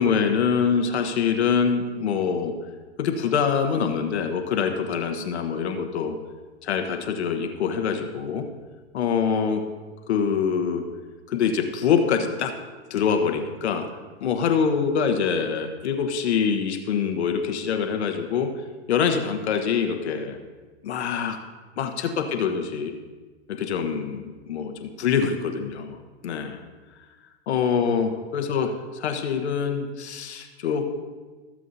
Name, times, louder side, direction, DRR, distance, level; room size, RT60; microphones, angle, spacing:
voice 1, 0.0-2.5 3.0-6.1 6.6-8.4 8.9-9.6 10.1-10.8 11.3-12.5 12.9-13.8 14.2-18.5 18.9-20.4 20.8-21.4 21.8-22.9 23.5-26.0 26.2-26.6 27.5-30.8, left 6 dB, 75° left, 5 dB, 1.2 m, -24 dB
16.0 x 7.5 x 2.7 m, 1.4 s
hypercardioid pair, 110°, 33 cm